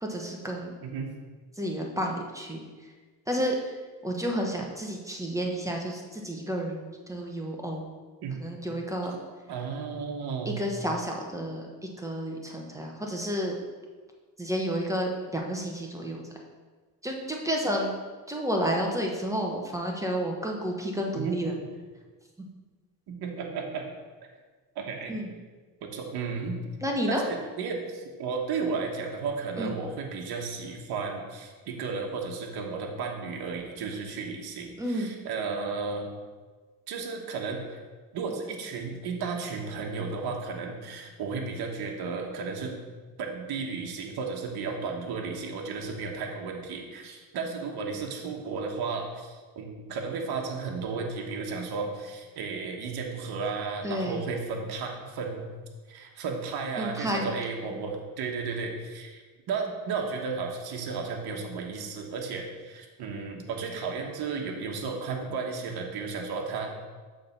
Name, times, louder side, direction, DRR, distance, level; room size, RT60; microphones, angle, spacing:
voice 1, 0.0-0.7 1.6-2.6 3.3-3.5 4.0-7.9 8.4-9.1 10.5-11.6 12.0-13.6 14.4-16.2 17.0-17.9 18.3-21.5 25.1-25.3 26.8-27.2 29.6-29.7 34.8-35.1 53.8-54.2 56.8-57.3, equal, 5° right, 0 dB, 1.1 m, -30 dB
voice 2, 9.5-10.6 21.1-21.4 23.1-23.8 24.7-25.2 25.8-26.6 27.1-36.1 36.9-37.8 38.1-42.7 43.2-55.4 55.9-66.7, right 4 dB, 60° right, 1 dB, 1.3 m, -34 dB
6.7 x 3.5 x 5.4 m, 1.4 s
supercardioid pair, 85°, 43 cm